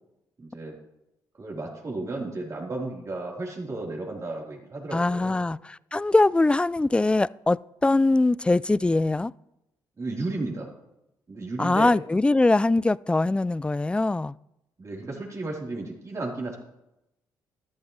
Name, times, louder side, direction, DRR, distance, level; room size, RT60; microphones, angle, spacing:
voice 1, 0.4-0.8 1.4-5.4 10.0-10.7 11.3-12.0 14.8-16.6, right 2 dB, 40° right, 4.1 m, -33 dB
voice 2, 4.9-9.3 11.6-14.3, left 2 dB, 15° left, 0.3 m, -22 dB
13.5 x 11.5 x 3.4 m
supercardioid pair, 60°, 8 cm